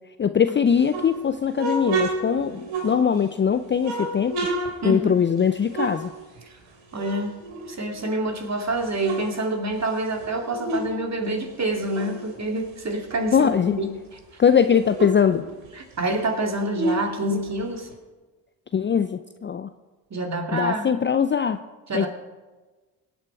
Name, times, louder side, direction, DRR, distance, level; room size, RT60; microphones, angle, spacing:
voice 1, 0.2-4.4 4.8-6.1 13.3-13.8 14.4-15.4 18.7-19.7 20.5-21.6 21.9-22.1, left 7 dB, 25° left, 11 dB, 0.6 m, -21 dB
sound 1, 0.7-3.3 3.8-6.7 6.9-8.3 8.7-11.0 11.2-13.8 14.2-14.3 14.5-17.9, right 3 dB, 65° right, 3.2 m, -31 dB
voice 2, 6.9-7.3 7.7-14.2 15.7-17.9 20.1-20.9 21.9-22.1, right 1 dB, 30° right, 4 dB, 2.5 m, -27 dB
24.5 x 8.8 x 4.8 m, 1.3 s
hypercardioid pair, 50°, 49 cm